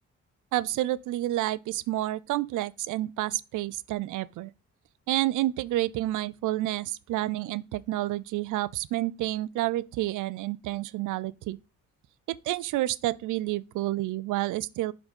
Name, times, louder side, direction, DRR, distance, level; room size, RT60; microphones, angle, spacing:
voice 1, 0.5-4.5 5.1-11.6 12.3-14.9, right 16 dB, 85° right, 0.6 m, -29 dB
11.0 x 4.0 x 5.2 m
cardioid pair, 90°, 30 cm